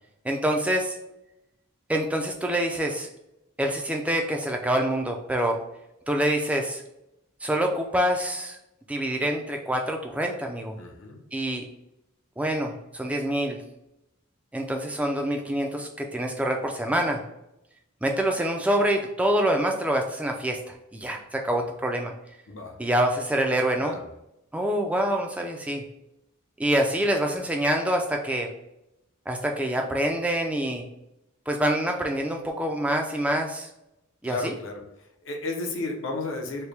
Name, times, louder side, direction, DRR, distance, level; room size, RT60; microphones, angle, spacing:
voice 1, 0.2-1.0 1.9-3.1 3.6-5.6 6.1-6.8 7.4-8.6 8.9-10.8 11.3-11.6 12.4-13.6 14.5-17.2 18.0-22.1 22.8-23.9 24.5-25.9 26.6-28.5 29.3-30.9 31.5-33.7 34.2-34.5, right 1 dB, 5° right, 2 dB, 0.3 m, -26 dB
voice 2, 10.8-11.2 22.5-22.8 23.8-24.0 34.2-36.7, left 2 dB, 60° left, 2 dB, 0.7 m, -33 dB
4.4 x 2.1 x 3.3 m, 0.87 s
head